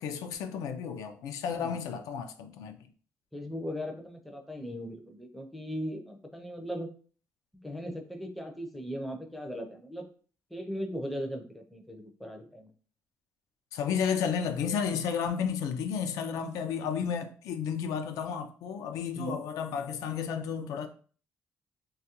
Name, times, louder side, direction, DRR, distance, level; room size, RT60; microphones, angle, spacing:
voice 1, 0.0-2.8 13.7-20.9, left 7 dB, 90° left, 0.3 m, -32 dB
voice 2, 3.3-6.9 7.6-10.1 10.5-12.7 19.1-19.4, equal, ahead, 0.4 m, -38 dB
2.9 x 2.3 x 2.8 m
cardioid pair, 140°, 6 cm